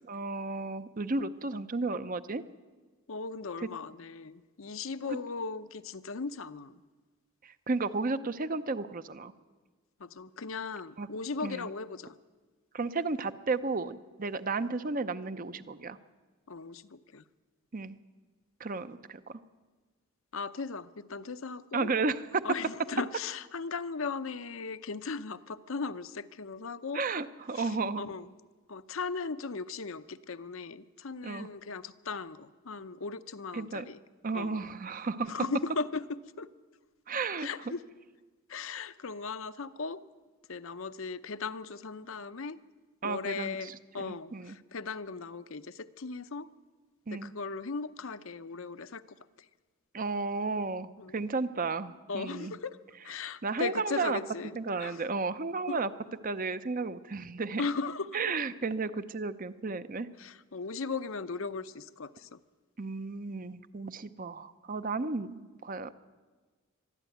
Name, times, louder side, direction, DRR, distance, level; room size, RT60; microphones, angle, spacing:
voice 1, 0.1-2.4 5.1-5.2 7.4-9.3 11.0-11.1 11.4-11.7 12.7-16.0 17.7-18.0 18.6-19.4 21.7-22.4 26.9-28.0 31.2-31.5 33.5-33.9 34.2-35.3 37.1-37.5 43.0-44.6 47.1-47.3 49.9-52.6 53.4-54.2 54.6-55.9 56.2-57.6 58.1-60.1 62.8-65.9, right 3 dB, 40° right, 12 dB, 0.7 m, -33 dB
voice 2, 3.1-6.7 10.0-12.2 16.5-17.2 20.3-21.9 22.4-27.0 27.5-27.7 28.0-28.3 28.7-34.0 34.3-34.6 35.3-36.0 36.4-36.5 37.4-37.8 38.5-40.0 40.5-42.6 43.0-46.5 47.1-49.0 51.0-51.2 52.1-52.8 53.0-54.5 54.8-55.0 55.7-55.8 57.6-58.2 60.2-62.4, left 4 dB, 60° left, 12 dB, 0.7 m, -37 dB
22.0 x 13.0 x 9.2 m, 1.4 s
head